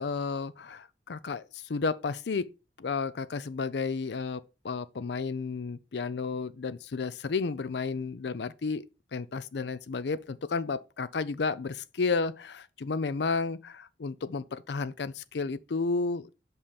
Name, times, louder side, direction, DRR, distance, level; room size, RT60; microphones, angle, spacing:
voice 1, 0.0-2.5 2.8-8.8 9.1-16.3, left 4 dB, 70° left, 0.5 m, -32 dB
5.5 x 5.5 x 5.0 m
head